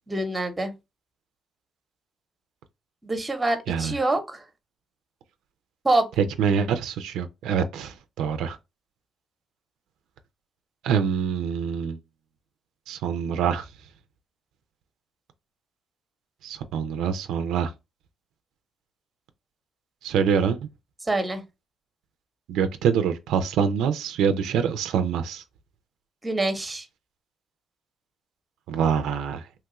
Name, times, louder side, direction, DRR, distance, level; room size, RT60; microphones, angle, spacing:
voice 1, 0.1-0.7 3.0-4.4 5.8-6.1 21.1-21.4 26.2-26.8, right 2 dB, 15° right, 0.8 m, -25 dB
voice 2, 6.2-8.6 10.8-12.0 12.9-13.7 16.4-17.7 20.0-20.6 22.5-25.4 28.7-29.4, right 7 dB, 90° right, 0.3 m, -25 dB
3.0 x 2.3 x 2.9 m
cardioid pair, 90°, 0 cm